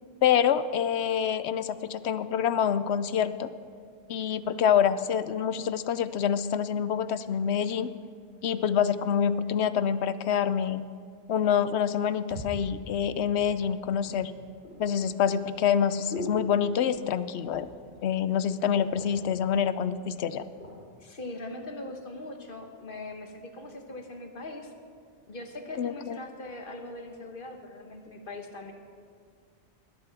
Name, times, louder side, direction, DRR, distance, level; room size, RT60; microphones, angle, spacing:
voice 1, 0.2-3.5 4.1-7.9 8.4-10.8 11.3-14.3 14.8-17.7 18.0-20.5 25.8-26.2, left 8 dB, 90° left, 13 dB, 0.9 m, -26 dB
sound 1, 12.3-16.2, right 1 dB, 90° right, 2.1 m, -46 dB
sound 2, 14.0-17.1 17.4-17.9 18.2-18.3 18.6-19.3 20.0-20.8 21.4-21.6, left 1 dB, 70° left, 3.0 m, -43 dB
voice 2, 21.0-24.7 25.3-28.7, left 2 dB, 55° left, 4 dB, 1.5 m, -41 dB
20.0 x 8.1 x 5.9 m, 2.1 s
omnidirectional pair, 1.1 m